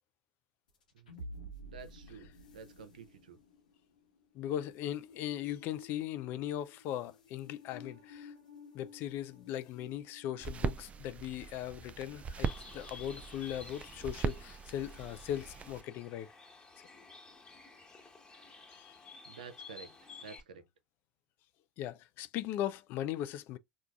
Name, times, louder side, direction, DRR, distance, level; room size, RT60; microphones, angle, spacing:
sound 1, 0.7-11.2, left 1 dB, 80° left, 1.0 m, -53 dB
voice 1, 1.6-3.4 19.2-20.7, right 5 dB, 80° right, 0.7 m, -51 dB
voice 2, 4.3-8.3 8.7-16.3 18.7-19.0 21.8-23.6, left 11 dB, 55° left, 0.4 m, -39 dB
sound 2, 10.4-15.8, right 6 dB, 30° right, 0.4 m, -40 dB
Bird, 12.4-20.4, left 4 dB, 20° left, 1.4 m, -53 dB
4.5 x 2.4 x 2.3 m
hypercardioid pair, 75°, 4 cm